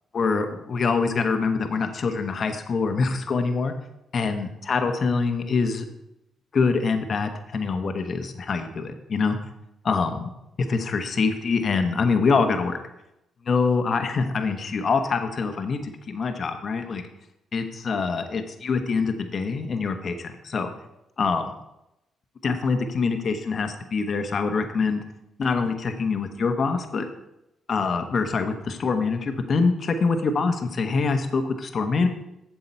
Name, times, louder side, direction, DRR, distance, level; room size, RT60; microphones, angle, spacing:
voice 1, 0.1-3.7 4.1-5.9 6.5-9.4 9.8-10.3 10.7-12.8 13.5-17.0 17.5-20.7 21.2-21.5 22.4-25.0 25.4-27.1 27.7-32.1, left 4 dB, 50° left, 6 dB, 1.0 m, -25 dB
7.9 x 6.9 x 4.4 m, 0.87 s
cardioid pair, 75°, 0 cm